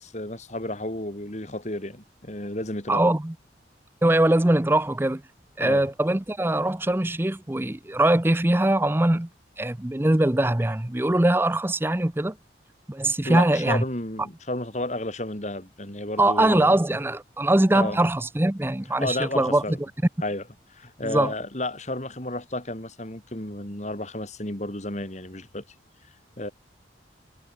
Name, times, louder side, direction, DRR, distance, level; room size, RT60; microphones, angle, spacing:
voice 1, 0.0-3.0 5.6-5.9 13.3-16.8 17.7-18.0 19.0-19.8 20.2-20.4 20.7-25.6 26.4-26.5, left 1 dB, 40° left, 3.3 m, -32 dB
voice 2, 2.9-3.3 4.0-5.2 5.6-9.3 9.6-12.4 12.9-13.8 16.2-19.8 21.0-21.3, right 1 dB, 10° right, 0.6 m, -22 dB
head